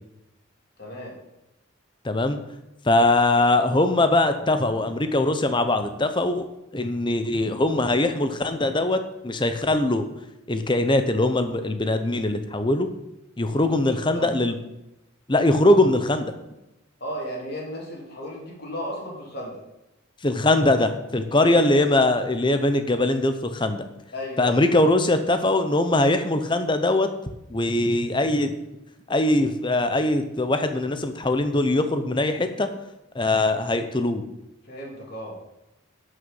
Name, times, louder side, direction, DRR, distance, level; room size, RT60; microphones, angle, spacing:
voice 1, 0.8-1.2 13.5-14.4 17.0-19.6 21.3-21.6 24.1-24.8 34.6-35.4, equal, 50° left, -3 dB, 3.4 m, -35 dB
voice 2, 2.0-2.4 2.8-6.5 6.7-10.1 10.5-12.9 13.4-14.6 15.3-16.3 20.2-23.8 24.4-27.1 27.5-28.5 29.1-32.7 33.1-34.2, left 2 dB, 25° left, 8 dB, 0.8 m, -21 dB
11.0 x 6.7 x 5.6 m, 0.92 s
head